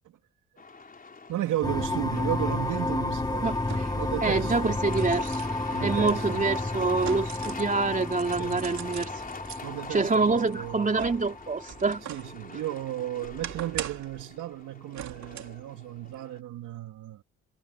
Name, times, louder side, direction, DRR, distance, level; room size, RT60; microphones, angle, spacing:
Truck, 0.6-16.4, left 4 dB, 30° left, 4.4 m, -45 dB
voice 1, 1.3-3.6 3.9-4.8 5.7-6.5 8.4-8.6 9.6-11.1 12.1-17.2, right 14 dB, 80° right, 2.7 m, -34 dB
sound 1, 1.6-12.1, left 2 dB, 15° left, 2.8 m, -31 dB
sound 2, 2.3-2.4 3.6-4.1 4.6-7.7 8.1-9.6 10.1-12.3 12.7-14.2 14.9-15.6 16.0-16.2, right 10 dB, 65° right, 3.0 m, -41 dB
voice 2, 3.4-3.9 4.2-5.4 5.8-9.1 9.9-12.0, right 3 dB, 25° right, 3.2 m, -26 dB
cardioid pair, 90°, 30 cm